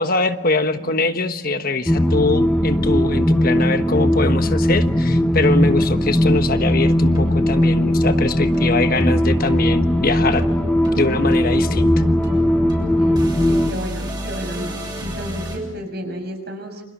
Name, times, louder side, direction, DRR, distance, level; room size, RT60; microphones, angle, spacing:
voice 1, 0.0-10.5 11.0-11.9, left 2 dB, 45° left, 8 dB, 1.3 m, -22 dB
sound 1, 0.6-15.6, right 1 dB, 20° right, 7.0 m, -34 dB
sound 2, 1.9-13.7, left 1 dB, 5° left, 0.9 m, -18 dB
voice 2, 13.0-16.8, equal, 50° right, 6 dB, 6.3 m, -32 dB
29.5 x 27.5 x 7.4 m, 0.93 s
head